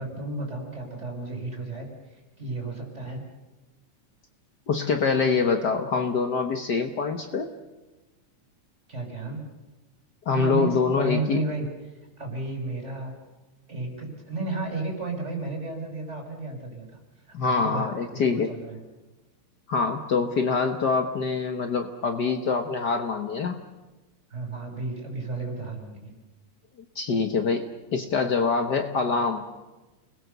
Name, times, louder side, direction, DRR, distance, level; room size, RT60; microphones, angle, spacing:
voice 1, 0.0-3.2 8.9-9.4 10.3-11.7 12.2-13.1 13.7-16.9 17.2-18.8 24.3-26.1, right 3 dB, 20° right, 1 dB, 6.3 m, -33 dB
voice 2, 4.7-7.5 10.2-11.4 17.3-18.5 19.7-23.6 26.9-29.6, left 5 dB, 80° left, 6 dB, 0.9 m, -25 dB
30.0 x 21.0 x 6.9 m, 1.1 s
omnidirectional pair, 3.8 m